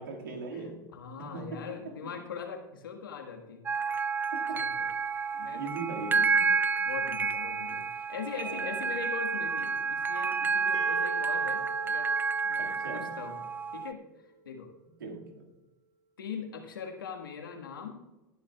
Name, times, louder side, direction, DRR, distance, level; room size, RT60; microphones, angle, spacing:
voice 1, 0.0-0.9 1.2-2.1 4.3-4.6 5.5-6.6 8.3-9.0 12.6-13.2 15.0-15.4, right 3 dB, 85° right, 1 dB, 2.0 m, -40 dB
voice 2, 0.9-3.6 4.5-4.9 5.4-5.7 6.8-12.1 12.4-12.6 12.9-13.4 13.7-14.7 16.2-18.0, left 6 dB, 85° left, 3 dB, 1.6 m, -41 dB
sound 1, 3.7-13.9, right 5 dB, 20° right, 0.4 m, -30 dB
sound 2, 10.7-14.5, right 3 dB, 40° right, 2.4 m, -45 dB
17.5 x 11.0 x 2.3 m, 1.1 s
hypercardioid pair, 85°, 11 cm